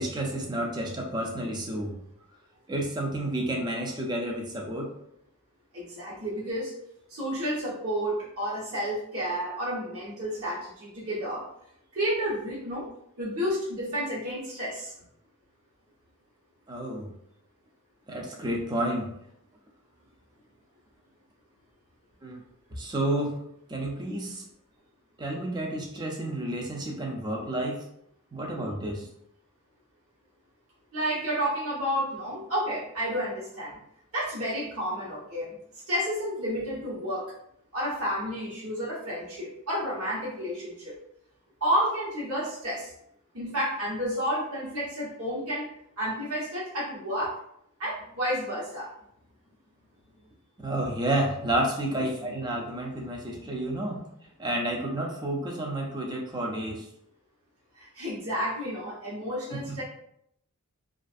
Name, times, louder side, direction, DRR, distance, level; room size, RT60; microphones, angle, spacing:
voice 1, 0.0-1.9 2.7-4.9 16.7-17.1 18.1-19.1 22.2-22.4 22.8-23.4 23.7-24.4 25.2-27.8 28.3-29.1 50.6-54.0 54.4-56.9 59.5-59.8, right 1 dB, 20° right, 0 dB, 0.4 m, -30 dB
voice 2, 5.7-6.7 7.1-11.4 11.9-12.9 13.2-14.9 30.9-33.8 34.1-35.5 35.9-37.3 37.7-40.9 41.6-42.9 43.3-45.7 46.0-47.3 47.8-48.9 57.8-59.8, equal, 70° right, -7 dB, 1.1 m, -31 dB
2.4 x 2.4 x 2.4 m, 0.73 s
head